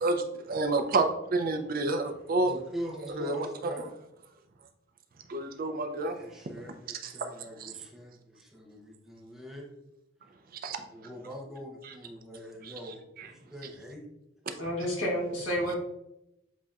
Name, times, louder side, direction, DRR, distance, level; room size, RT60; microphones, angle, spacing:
voice 1, 0.0-2.5 3.1-3.7 5.3-6.2 7.0-7.3 7.6-7.7 10.5-10.8, right 2 dB, 50° right, 7 dB, 0.5 m, -29 dB
voice 2, 2.4-3.9 6.1-9.7 10.7-14.0, equal, ahead, -2 dB, 0.8 m, -43 dB
voice 3, 14.6-15.7, equal, 85° left, -3 dB, 1.6 m, -30 dB
7.2 x 2.8 x 2.4 m, 0.85 s
head